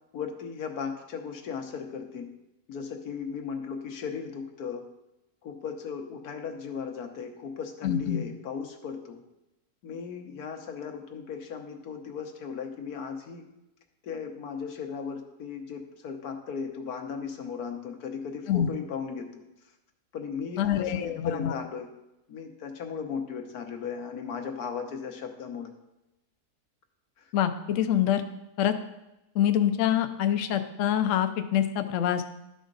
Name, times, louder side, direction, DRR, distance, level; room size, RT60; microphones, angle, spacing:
voice 1, 0.1-2.3 2.7-4.8 5.4-9.2 9.8-13.4 14.0-19.4 20.1-21.9 22.3-25.7 27.2-27.3, left 6 dB, 85° left, 4 dB, 1.5 m, -36 dB
voice 2, 7.8-8.2 18.5-18.7 20.6-21.5 27.3-28.2 28.6-28.7 29.3-32.2, left 10 dB, 65° left, 8 dB, 0.9 m, -25 dB
12.0 x 5.0 x 3.9 m, 0.92 s
omnidirectional pair, 1.6 m